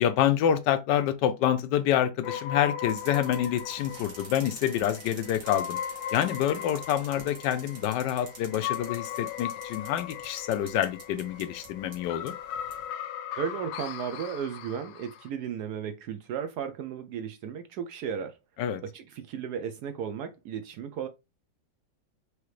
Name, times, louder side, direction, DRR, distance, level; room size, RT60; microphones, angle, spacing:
voice 1, 0.0-5.8 6.1-12.3 18.6-18.8, left 10 dB, 75° left, 1.1 m, -27 dB
sound 1, 2.2-15.3, left 9 dB, 90° left, 1.4 m, -38 dB
sound 2, 2.9-12.9, right 3 dB, 60° right, 2.0 m, -48 dB
voice 2, 13.4-18.4 18.8-21.1, right 8 dB, 75° right, 0.9 m, -35 dB
4.9 x 2.8 x 3.1 m
omnidirectional pair, 2.1 m